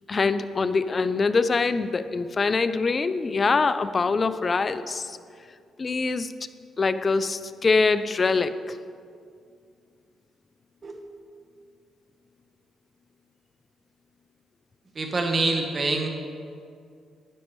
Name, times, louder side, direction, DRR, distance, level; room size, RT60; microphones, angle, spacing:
voice 1, 0.1-5.2 5.8-6.3 6.8-8.8, left 4 dB, 35° left, 13 dB, 0.4 m, -24 dB
voice 2, 14.9-16.1, right 3 dB, 35° right, 3 dB, 1.2 m, -25 dB
12.5 x 9.6 x 3.1 m, 2.3 s
cardioid pair, 90°, 0 cm